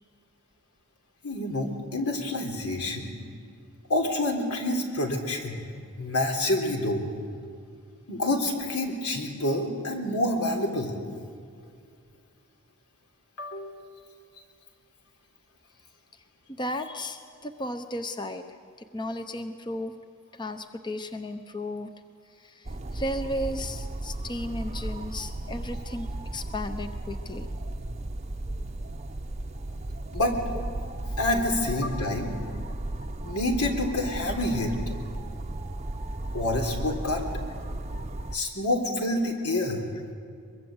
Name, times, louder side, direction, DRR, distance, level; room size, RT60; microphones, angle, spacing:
voice 1, 1.2-3.1 3.9-5.6 6.0-7.0 8.1-10.9 13.4-13.8 30.1-30.4 31.2-32.3 33.2-34.7 36.3-37.2 38.3-39.8, left 1 dB, 80° left, 3 dB, 3.6 m, -27 dB
voice 2, 16.6-18.4 18.9-20.0 20.3-21.9 22.4-27.5 30.5-30.6, left 1 dB, 20° left, 7 dB, 0.8 m, -34 dB
sound 1, 22.6-38.4, right 1 dB, 30° right, 0.7 m, -35 dB
23.0 x 23.0 x 8.0 m, 2.3 s
head